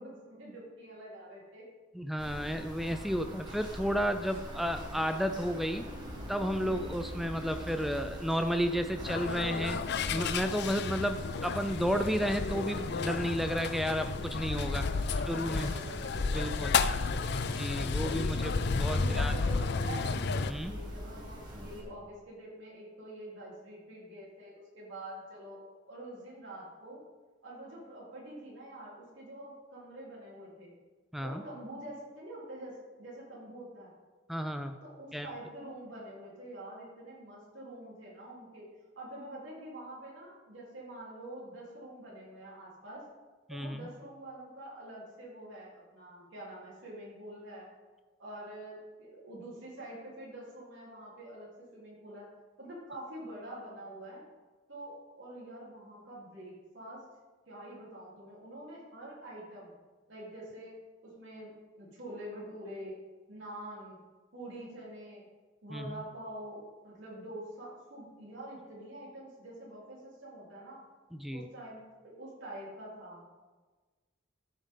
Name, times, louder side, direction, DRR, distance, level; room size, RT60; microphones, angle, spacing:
voice 1, 0.0-1.7 14.7-16.8 18.8-20.2 20.6-27.0 27.4-30.7 31.2-33.9 34.8-38.7 39.0-43.1 43.5-47.7 48.2-52.3 52.6-54.2 54.7-57.0 57.5-59.7 60.1-60.8 61.0-63.0 63.3-64.0 64.3-65.3 65.6-70.8 71.3-73.2, right 1 dB, 70° right, -6 dB, 3.6 m, -46 dB
voice 2, 1.9-5.9 6.3-9.8 10.1-14.8 15.3-15.7 16.3-16.8 17.5-19.3 20.5-20.8 31.1-31.4 34.3-34.8 35.1-35.3 43.5-43.9 65.7-66.0 71.1-71.5, equal, ahead, 7 dB, 0.4 m, -32 dB
sound 1, 2.2-21.8, equal, 20° right, 1.9 m, -44 dB
sound 2, 9.0-20.5, left 4 dB, 60° left, 0.5 m, -32 dB
13.0 x 7.2 x 3.8 m, 1.3 s
head